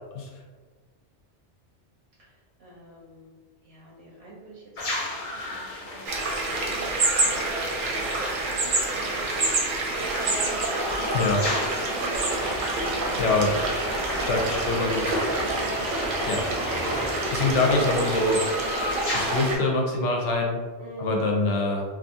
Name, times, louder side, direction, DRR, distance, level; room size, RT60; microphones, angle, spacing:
voice 1, 2.2-3.4 3.6-4.7 5.0-10.6 11.4-11.6 12.0-12.4 14.2-15.1 15.6-15.9 20.8-21.2, right 2 dB, 90° right, -5 dB, 1.0 m, -42 dB
sound 1, 4.8-19.4, left 2 dB, 50° left, 0.8 m, -36 dB
sound 2, 6.1-19.6, right 2 dB, 60° right, 0.6 m, -27 dB
sound 3, 12.3-17.5, equal, 15° left, 0.4 m, -35 dB
voice 2, 13.2-13.6 14.3-15.0 16.3-16.4 17.3-18.4 19.1-20.6 21.0-21.8, left 2 dB, 85° left, 1 dB, 0.9 m, -24 dB
2.7 x 2.4 x 2.6 m, 1.5 s
omnidirectional pair, 1.2 m